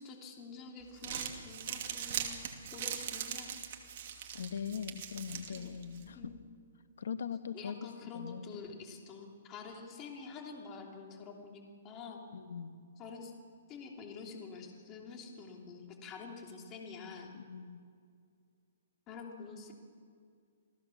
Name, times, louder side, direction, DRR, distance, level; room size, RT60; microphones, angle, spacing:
voice 1, 0.0-2.4 2.7-3.6 5.6-5.7 6.1-6.4 7.5-12.2 13.0-13.3 13.7-17.3 19.1-19.7, left 4 dB, 20° left, 1 dB, 3.1 m, -47 dB
Crumpling crinkling, 0.8-6.1, right 8 dB, 45° right, 2.6 m, -41 dB
voice 2, 4.3-6.3 7.0-8.6 12.3-12.7 17.3-17.8, left 7 dB, 80° left, 11 dB, 1.4 m, -41 dB
28.0 x 17.0 x 7.2 m, 2.2 s
hypercardioid pair, 160°, 0 cm